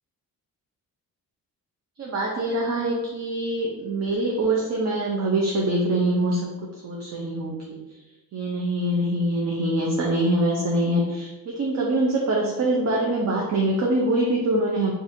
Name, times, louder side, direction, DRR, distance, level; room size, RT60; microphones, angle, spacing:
voice 1, 2.0-8.0 8.3-14.9, right 1 dB, 45° right, -2 dB, 0.6 m, -24 dB
4.1 x 2.5 x 2.5 m, 1.1 s
cardioid pair, 125°, 37 cm